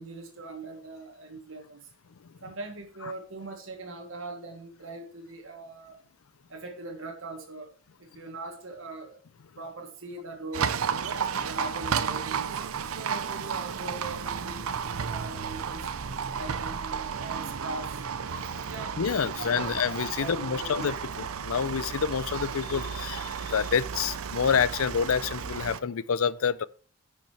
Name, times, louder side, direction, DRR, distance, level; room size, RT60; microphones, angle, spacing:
voice 1, 0.0-1.9 2.4-6.0 6.5-7.7 8.0-9.2 9.6-10.9 11.4-12.6 12.9-15.9 16.3-18.0 18.7-20.9, right 2 dB, 70° right, 1.6 m, -41 dB
Livestock farm animals working animals, 10.5-25.8, right 6 dB, 85° right, 0.6 m, -33 dB
voice 2, 11.1-11.5 18.3-18.6 19.0-26.6, left 6 dB, 85° left, 0.5 m, -28 dB
10.5 x 5.5 x 4.5 m
head